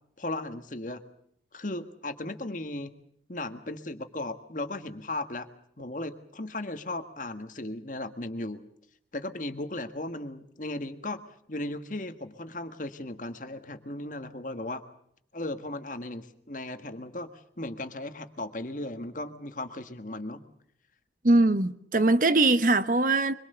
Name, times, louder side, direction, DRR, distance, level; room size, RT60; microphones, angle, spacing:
voice 1, 0.2-1.0 1.5-3.0 3.3-5.5 5.8-8.6 9.1-11.2 11.5-14.8 15.3-17.3 17.6-20.4, left 2 dB, 45° left, 1.7 m, -36 dB
voice 2, 21.2-23.3, right 2 dB, 50° right, 1.0 m, -22 dB
24.5 x 23.5 x 6.8 m
head